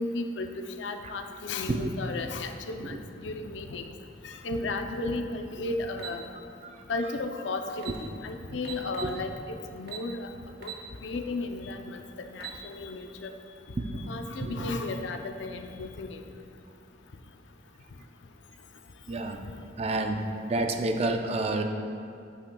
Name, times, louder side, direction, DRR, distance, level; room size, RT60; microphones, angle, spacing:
voice 1, 0.0-3.9 4.2-6.2 6.9-9.3 9.7-10.3 10.6-10.7 11.0-13.3 13.9-16.2, left 2 dB, 90° left, 6 dB, 0.5 m, -34 dB
sound 1, 6.0-6.2 7.4-7.5 7.7-8.0 8.6-9.2 9.9-10.1 10.6-10.8 11.3-11.4 12.2-12.6, right 9 dB, 60° right, 1.1 m, -40 dB
voice 2, 14.4-14.7 19.1-19.5 19.8-21.6, right 2 dB, 35° right, 5 dB, 0.4 m, -30 dB
8.5 x 7.8 x 2.2 m, 2.4 s
head